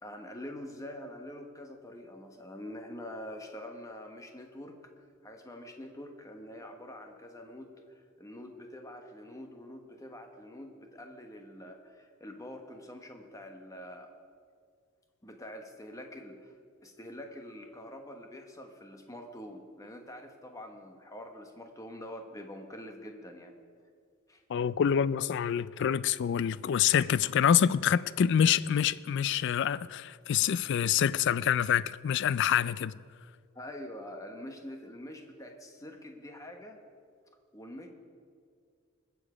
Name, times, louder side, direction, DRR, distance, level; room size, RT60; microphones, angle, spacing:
voice 1, 0.0-4.8 5.2-14.1 15.2-16.5 16.8-23.5 24.3-24.4 33.5-36.8 37.5-37.9, left 1 dB, 15° left, 1.1 m, -45 dB
voice 2, 24.5-32.9, left 8 dB, 55° left, 0.3 m, -26 dB
21.0 x 7.1 x 4.9 m
head